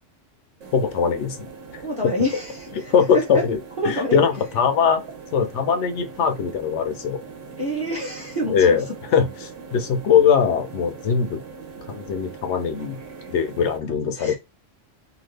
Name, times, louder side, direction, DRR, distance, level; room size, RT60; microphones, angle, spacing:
sound 1, 0.6-13.8, right 5 dB, 80° right, 1.2 m, -41 dB
voice 1, 0.7-1.5 1.7-1.8 2.9-3.6 3.8-5.0 5.3-7.2 8.5-8.8 9.1-11.4 11.9-13.0 13.3-14.3, left 7 dB, 70° left, 0.9 m, -21 dB
voice 2, 1.8-3.4 3.8-4.2 7.6-8.8 13.9-14.3, equal, 30° right, 1.0 m, -27 dB
2.8 x 2.3 x 3.2 m
omnidirectional pair, 1.3 m